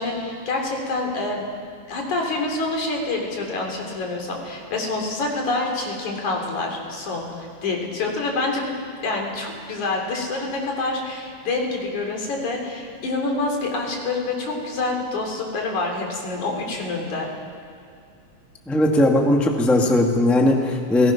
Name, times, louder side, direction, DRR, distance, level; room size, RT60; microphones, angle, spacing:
voice 1, 0.0-1.5 1.9-17.3, left 3 dB, 80° left, 0 dB, 4.7 m, -27 dB
voice 2, 18.7-21.1, left 1 dB, ahead, 1 dB, 1.3 m, -18 dB
29.5 x 19.5 x 6.0 m, 2.5 s
omnidirectional pair, 3.3 m